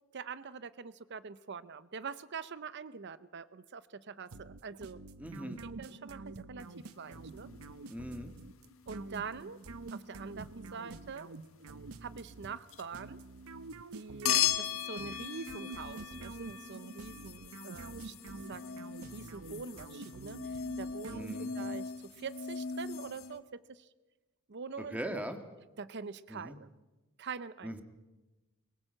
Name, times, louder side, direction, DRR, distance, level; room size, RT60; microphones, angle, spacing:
voice 1, 0.1-5.0 5.6-7.5 8.9-9.6 9.9-11.3 12.0-13.2 13.9-18.2 18.4-18.6 19.1-21.3 21.5-23.9 24.5-25.2 25.8-26.7 27.2-27.7, right 5 dB, 55° right, 16 dB, 0.6 m, -44 dB
sound 1, 4.3-21.8, right 3 dB, 80° right, 0.8 m, -47 dB
voice 2, 5.2-5.6 7.9-8.3 21.1-21.5 24.9-25.4 26.3-26.6 27.6-27.8, right 1 dB, 5° right, 7 dB, 1.7 m, -40 dB
sound 2, 6.8-8.1 8.7-9.1 12.3-12.9 14.2-23.4, left 9 dB, 70° left, 1.4 m, -38 dB
22.0 x 19.0 x 7.8 m, 1.1 s
head